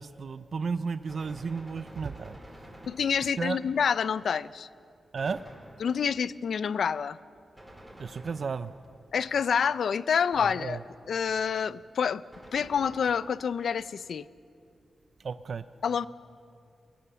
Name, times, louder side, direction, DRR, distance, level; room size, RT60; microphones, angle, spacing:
voice 1, 0.0-2.8 3.4-3.6 5.1-5.4 8.0-8.7 10.4-10.8 15.2-15.6, right 5 dB, 55° right, 12 dB, 0.5 m, -33 dB
Gunshot gunfire, 1.1-3.6 5.1-6.2 7.5-9.0 10.3-11.1 12.3-13.5, equal, 5° right, 4.8 m, -50 dB
voice 2, 2.8-4.7 5.8-7.2 9.1-10.8 11.1-12.2 12.5-14.3 15.8-16.1, left 7 dB, 70° left, 16 dB, 0.5 m, -27 dB
26.0 x 17.0 x 6.9 m, 2.4 s
wide cardioid pair, 135°, 0 cm